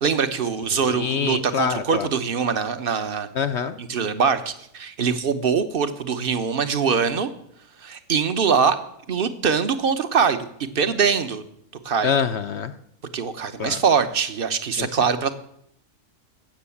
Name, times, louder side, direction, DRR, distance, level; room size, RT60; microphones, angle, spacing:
voice 1, 0.0-3.3 3.8-7.3 7.8-8.8 9.1-10.4 10.7-11.4 11.8-12.1 13.1-15.3, right 6 dB, 45° right, 11 dB, 1.0 m, -23 dB
voice 2, 0.8-2.1 3.4-3.8 12.0-12.7 13.6-13.8 14.8-14.9, left 7 dB, 60° left, 10 dB, 0.8 m, -25 dB
15.0 x 6.6 x 8.4 m, 0.73 s
omnidirectional pair, 1.5 m